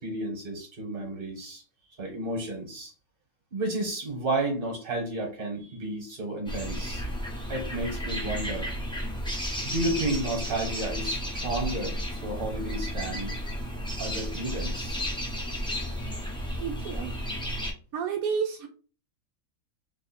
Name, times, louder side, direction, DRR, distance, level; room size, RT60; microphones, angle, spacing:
voice 1, 0.0-1.6 2.0-2.9 3.5-7.0 7.5-8.7 9.6-13.3 14.0-15.0, right 2 dB, 40° right, 2 dB, 1.6 m, -32 dB
sound 1, 6.5-17.7, equal, 5° left, 0.7 m, -33 dB
voice 2, 16.6-17.1 17.9-18.7, right 6 dB, 80° right, 2 dB, 1.2 m, -30 dB
3.0 x 2.6 x 4.2 m, 0.35 s
omnidirectional pair, 1.5 m